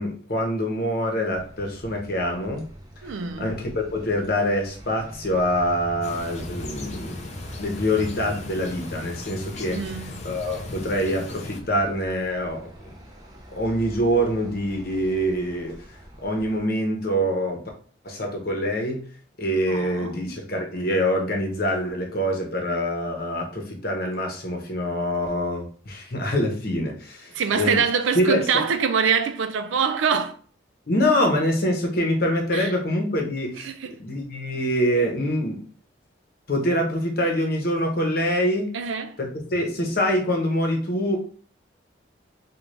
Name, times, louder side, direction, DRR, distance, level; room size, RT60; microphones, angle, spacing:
voice 1, 0.0-2.6 3.1-7.3 7.6-9.8 10.2-12.9 13.5-15.7 16.2-17.6 18.0-19.1 19.4-27.8 28.1-28.6 30.9-35.6 36.5-38.7 39.2-41.2, equal, 50° left, 0.9 m, -25 dB
sound 1, 1.3-16.6, right 1 dB, 20° right, 0.6 m, -44 dB
voice 2, 3.0-3.5 9.7-10.3 19.7-20.1 27.3-30.4 32.5-32.7 33.6-33.9 38.7-39.2, right 6 dB, 85° right, 0.4 m, -25 dB
sound 2, 6.0-11.6, left 2 dB, 35° left, 0.4 m, -37 dB
3.8 x 2.3 x 3.2 m
head